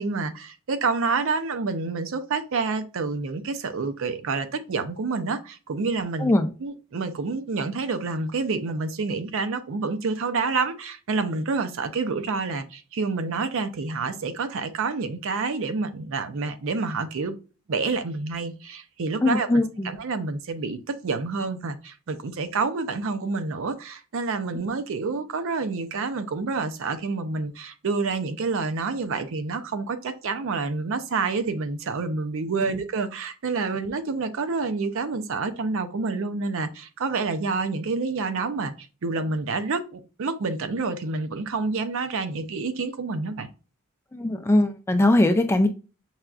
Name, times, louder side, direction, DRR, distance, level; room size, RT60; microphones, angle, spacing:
voice 1, 0.0-6.3 6.6-17.4 17.7-38.7 39.0-43.5, right 4 dB, 60° right, 0.5 m, -28 dB
voice 2, 19.2-19.9 32.6-32.7 44.1-45.7, left 1 dB, 10° left, 0.3 m, -21 dB
5.5 x 2.3 x 2.3 m
head